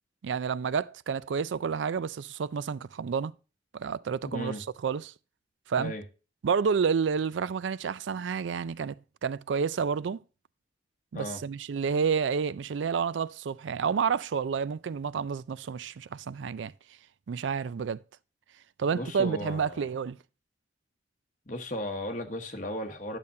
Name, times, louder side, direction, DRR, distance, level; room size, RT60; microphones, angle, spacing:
voice 1, 0.2-3.3 3.7-4.6 4.8-5.1 5.7-5.9 6.4-10.2 11.1-16.7 17.3-18.0 18.8-20.2, right 6 dB, 85° right, 0.4 m, -29 dB
voice 2, 4.2-4.6 5.8-6.0 11.1-11.4 18.9-19.8 21.5-23.2, left 1 dB, 45° left, 1.3 m, -35 dB
10.5 x 6.9 x 2.7 m
head